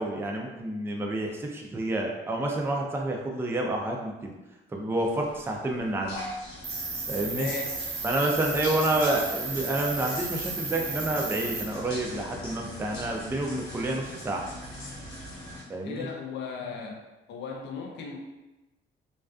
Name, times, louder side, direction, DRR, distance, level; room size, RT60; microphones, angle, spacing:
voice 1, 0.0-4.3 4.7-6.2 7.1-7.5 8.0-14.4 15.7-16.1, right 1 dB, 10° right, 0 dB, 0.4 m, -29 dB
sound 1, 5.0-15.6, left 1 dB, 85° left, 0.9 m, -41 dB
Cricket, 6.6-11.6, right 4 dB, 55° right, 0.6 m, -34 dB
voice 2, 7.3-7.7 15.8-17.0 17.3-18.2, left 5 dB, 65° left, 0 dB, 0.4 m, -36 dB
2.3 x 2.2 x 2.4 m, 1.1 s
cardioid pair, 90°, 20 cm